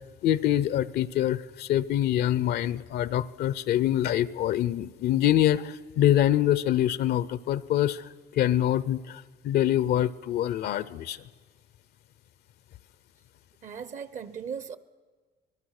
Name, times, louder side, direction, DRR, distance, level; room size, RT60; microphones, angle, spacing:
voice 1, 0.2-11.2, left 12 dB, 70° left, 17 dB, 0.7 m, -25 dB
voice 2, 13.6-14.8, right 7 dB, 50° right, 15 dB, 1.0 m, -37 dB
25.5 x 20.0 x 6.6 m, 1.5 s
cardioid pair, 110°, 17 cm